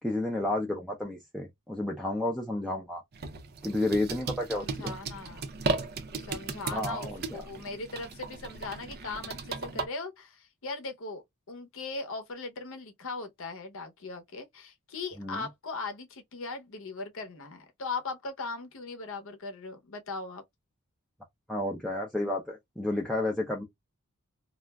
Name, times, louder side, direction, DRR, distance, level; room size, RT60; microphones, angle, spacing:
voice 1, 0.0-3.0 3.6-5.0 6.7-7.4 15.2-15.4 21.5-23.6, left 1 dB, ahead, 0.5 m, -31 dB
sound 1, 3.1-9.9, right 4 dB, 45° right, 0.6 m, -36 dB
voice 2, 4.5-5.6 6.2-20.4, left 3 dB, 65° left, 0.7 m, -39 dB
2.4 x 2.1 x 3.3 m
head